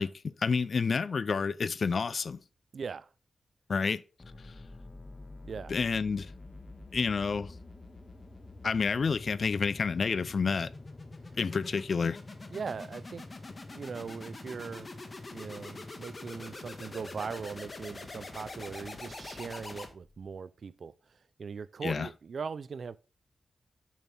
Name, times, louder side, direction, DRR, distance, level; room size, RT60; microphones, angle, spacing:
voice 1, 0.0-2.4 3.7-4.0 5.7-6.3 6.9-7.5 8.6-10.7 11.4-12.2 21.8-22.1, left 5 dB, 60° left, 0.4 m, -29 dB
voice 2, 2.7-3.1 5.4-5.8 12.5-13.2 13.7-14.9 15.3-20.9 21.4-23.0, right 5 dB, 65° right, 0.4 m, -40 dB
sound 1, 4.2-20.3, left 2 dB, 40° left, 1.5 m, -45 dB
7.2 x 5.9 x 3.4 m
cardioid pair, 60°, 0 cm